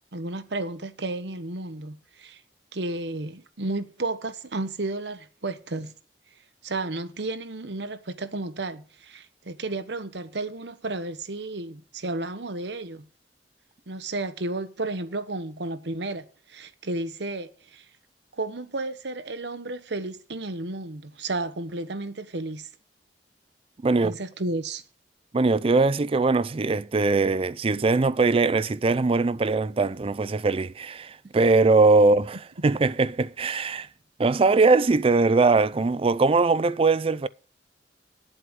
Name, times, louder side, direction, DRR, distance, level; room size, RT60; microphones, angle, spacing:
voice 1, 0.1-2.4 2.7-5.9 6.6-13.1 13.9-17.8 18.3-22.7 24.0-24.8, right 2 dB, 70° right, 1.1 m, -32 dB
voice 2, 25.3-33.9 34.2-37.3, right 3 dB, 35° right, 0.4 m, -21 dB
9.6 x 7.8 x 6.1 m
head